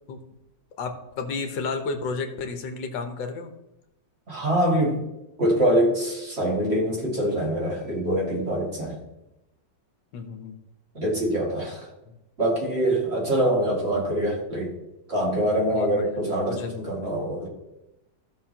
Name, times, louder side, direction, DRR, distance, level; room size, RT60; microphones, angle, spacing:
voice 1, 0.8-3.5 10.1-10.6 12.1-12.2 13.4-13.5 15.7-16.9, left 4 dB, 70° left, 6 dB, 1.7 m, -32 dB
voice 2, 4.3-5.0 5.4-9.0 10.9-11.9 12.4-14.7 15.1-17.5, right 1 dB, 35° right, -3 dB, 2.3 m, -24 dB
15.5 x 6.4 x 2.9 m, 0.94 s
omnidirectional pair, 2.1 m